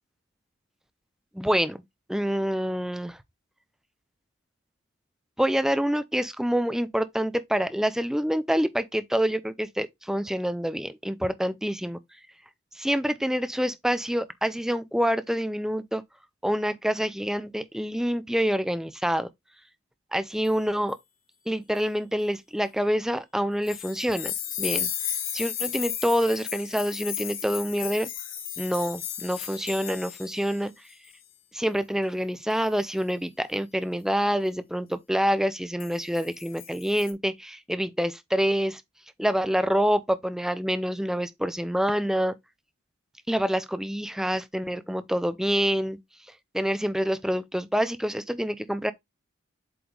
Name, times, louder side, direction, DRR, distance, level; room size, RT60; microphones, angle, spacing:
voice 1, 1.3-1.8 2.1-3.2 5.4-12.0 12.7-16.0 16.4-19.3 20.1-21.0 21.5-24.9 25.3-28.1 28.6-30.7 31.5-38.8 39.2-42.4 43.3-46.0 46.5-48.9, equal, ahead, 0.5 m, -27 dB
sound 1, 23.7-30.6 30.9-31.1 32.5-32.8 35.8-37.1, left 9 dB, 70° left, 1.5 m, -34 dB
7.9 x 3.2 x 3.9 m
head